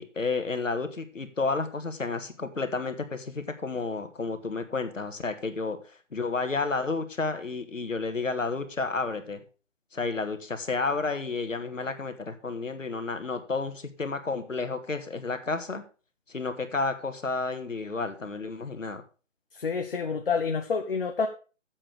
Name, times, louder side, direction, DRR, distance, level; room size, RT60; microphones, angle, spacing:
voice 1, 0.0-9.4 9.9-15.8 16.3-19.0, left 3 dB, 80° left, 8 dB, 1.6 m, -31 dB
voice 2, 19.6-21.3, left 5 dB, 45° left, 5 dB, 1.0 m, -28 dB
7.5 x 7.0 x 6.2 m, 0.36 s
figure-of-eight pair, 155°, 38 cm